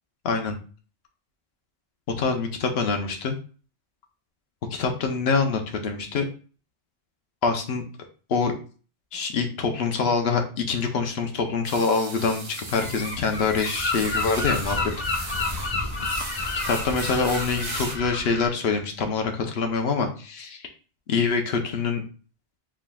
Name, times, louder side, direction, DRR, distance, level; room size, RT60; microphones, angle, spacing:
voice 1, 0.2-0.6 2.2-3.4 4.7-6.3 7.4-7.8 8.3-8.5 9.1-14.8 16.7-20.7 21.1-22.0, left 4 dB, 75° left, 5 dB, 0.9 m, -25 dB
sound 1, 11.6-18.0, right 3 dB, 35° right, 0.5 m, -37 dB
Gull seagull, 12.7-18.5, left 3 dB, 45° left, 0.9 m, -30 dB
4.2 x 3.5 x 2.2 m, 0.38 s
omnidirectional pair, 1.1 m